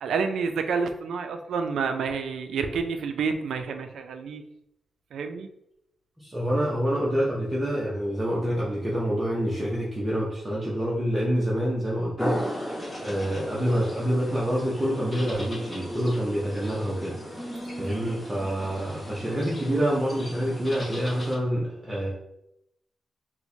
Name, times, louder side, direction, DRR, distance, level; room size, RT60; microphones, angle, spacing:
voice 1, 0.0-4.4 5.1-5.5 18.0-18.2, right 5 dB, 85° right, 7 dB, 0.3 m, -29 dB
voice 2, 6.2-22.1, equal, 15° right, -6 dB, 0.6 m, -27 dB
sound 1, 12.2-21.4, equal, 10° left, 1.0 m, -36 dB
4.4 x 2.1 x 2.6 m, 0.81 s
wide cardioid pair, 140°, 0 cm